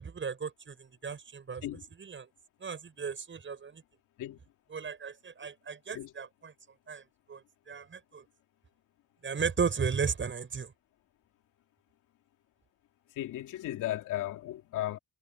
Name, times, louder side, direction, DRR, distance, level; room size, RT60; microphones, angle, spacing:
voice 1, 0.0-1.6 2.0-2.3 2.6-3.8 4.7-6.5 6.9-7.0 7.3-8.2 9.2-10.7, right 6 dB, 40° right, 7.1 m, -35 dB
voice 2, 13.2-15.0, left 14 dB, 85° left, 3.0 m, -35 dB
cardioid pair, 90°, 30 cm